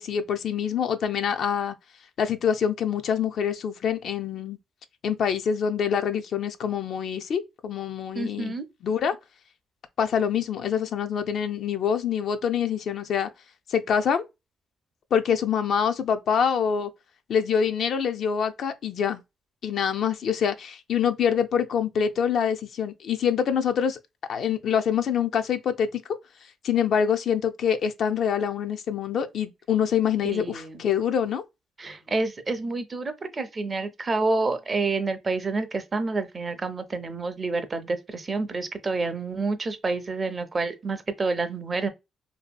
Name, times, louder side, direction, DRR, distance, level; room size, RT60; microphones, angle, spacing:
voice 1, 0.0-1.8 2.2-4.6 5.0-8.6 8.8-9.2 10.0-13.3 13.7-14.2 15.1-16.9 17.3-19.2 19.6-24.0 24.3-26.0 26.6-31.4, left 7 dB, 65° left, 0.3 m, -25 dB
voice 2, 8.1-8.6 30.2-30.8 31.8-41.9, right 3 dB, 30° right, 0.5 m, -28 dB
2.6 x 2.5 x 2.3 m
cardioid pair, 90°, 0 cm